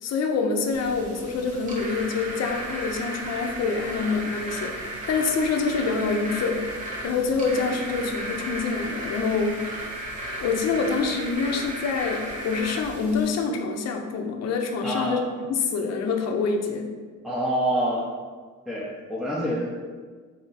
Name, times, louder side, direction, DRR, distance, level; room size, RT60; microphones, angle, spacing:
voice 1, 0.0-6.6 7.0-9.6 10.4-16.9, left 4 dB, 60° left, 4 dB, 0.6 m, -26 dB
sound 1, 0.7-13.3, right 1 dB, 25° right, 1.0 m, -35 dB
voice 2, 14.8-15.2 17.2-18.1 18.7-19.7, right 1 dB, ahead, -5 dB, 0.6 m, -26 dB
3.4 x 2.7 x 4.1 m, 1.5 s
cardioid pair, 90°, 30 cm